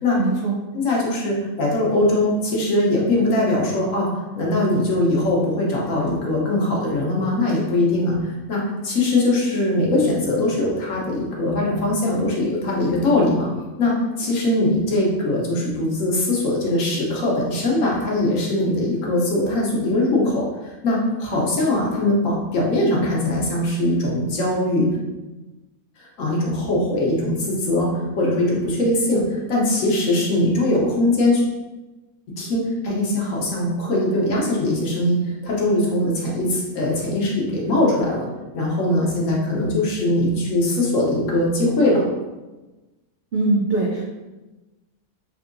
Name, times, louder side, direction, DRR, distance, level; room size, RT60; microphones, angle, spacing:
voice 1, 0.2-0.6 43.3-44.0, right 3 dB, 75° right, -3 dB, 0.5 m, -21 dB
voice 2, 0.7-4.1 4.4-13.5 13.8-24.9 26.0-31.5 32.4-38.3 38.5-42.0, left 1 dB, 65° left, -3 dB, 1.1 m, -21 dB
3.6 x 2.7 x 2.5 m, 1.1 s
omnidirectional pair, 1.6 m